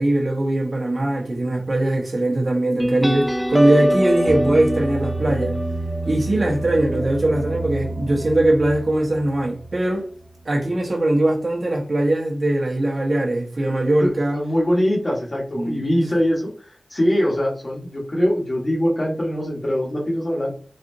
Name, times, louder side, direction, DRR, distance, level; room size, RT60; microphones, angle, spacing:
voice 1, 0.0-5.6 6.0-10.1 10.4-14.4 15.5-15.8, right 1 dB, 55° right, 1.0 m, -21 dB
sound 1, 2.8-10.0, right 1 dB, 5° left, 0.3 m, -25 dB
voice 2, 14.0-16.5 16.9-20.5, equal, 50° left, 1.4 m, -22 dB
4.1 x 2.4 x 2.6 m
wide cardioid pair, 70°, 0 cm